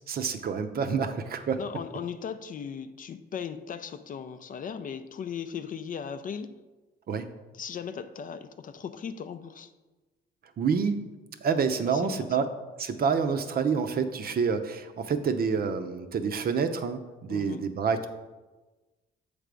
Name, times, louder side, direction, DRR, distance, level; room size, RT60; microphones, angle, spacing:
voice 1, 0.1-1.6 7.1-7.2 10.6-11.0 11.4-12.5 12.8-18.1, right 6 dB, 50° right, 9 dB, 0.6 m, -28 dB
voice 2, 1.6-6.6 7.5-9.7 11.9-12.3 17.3-17.6, left 7 dB, 45° left, 11 dB, 0.4 m, -37 dB
7.3 x 3.4 x 5.1 m, 1.2 s
cardioid pair, 90°, 20 cm